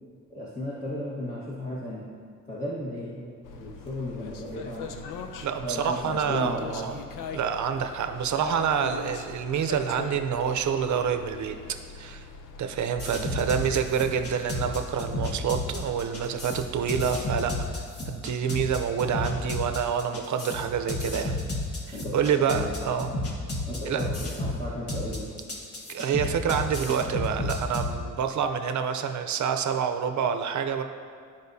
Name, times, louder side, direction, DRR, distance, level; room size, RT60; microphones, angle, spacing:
voice 1, 0.3-2.1 2.5-5.0 5.6-6.9 13.1-13.3 21.9-22.7 23.7-25.3, left 1 dB, 25° left, -6 dB, 1.3 m, -35 dB
sound 1, 3.4-17.7, left 4 dB, 85° left, 0.6 m, -42 dB
voice 2, 5.4-7.0 7.3-11.6 12.0-12.2 12.6-17.5 18.1-21.4 21.9-23.1 23.9-24.1 25.9-30.8, right 7 dB, 65° right, 7 dB, 0.6 m, -27 dB
sound 2, 13.0-27.9, left 1 dB, 45° left, 1.5 m, -32 dB
13.5 x 5.1 x 2.7 m, 2.1 s
cardioid pair, 100°, 31 cm